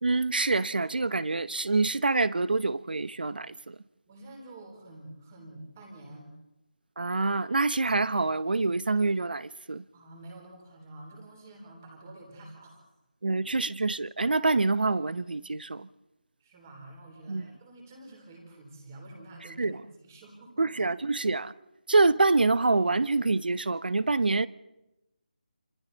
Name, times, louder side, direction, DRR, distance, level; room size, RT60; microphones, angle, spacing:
voice 1, 0.0-3.8 7.0-9.8 13.2-15.9 17.3-17.5 19.6-19.8 20.6-21.5 21.9-24.5, right 3 dB, 75° right, 0.8 m, -26 dB
voice 2, 4.1-6.3 9.9-12.8 13.3-13.4 16.4-20.7, right 1 dB, 20° right, 3.6 m, -48 dB
28.0 x 26.5 x 4.1 m
figure-of-eight pair, 175°, 5 cm